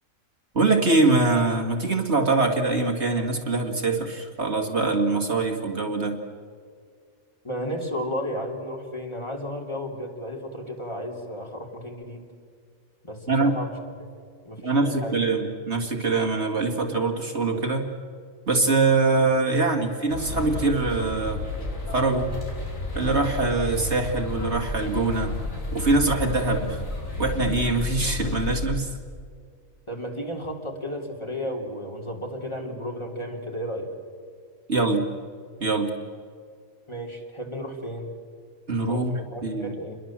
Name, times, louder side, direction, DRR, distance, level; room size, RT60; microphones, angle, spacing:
voice 1, 0.5-6.2 13.3-13.6 14.6-17.9 18.5-21.4 21.9-22.3 22.9-25.3 25.7-26.8 27.2-28.9 34.7-35.1 35.6-35.9 38.7-39.7, right 3 dB, 50° right, 2 dB, 2.4 m, -23 dB
voice 2, 7.4-12.2 13.0-13.7 14.0-14.1 14.4-15.2 29.9-33.9 36.9-38.1 38.9-40.0, equal, 20° left, 0 dB, 3.3 m, -33 dB
sound 1, 20.1-28.7, left 2 dB, 70° left, 4.9 m, -31 dB
28.5 x 22.0 x 7.5 m, 2.2 s
omnidirectional pair, 1.4 m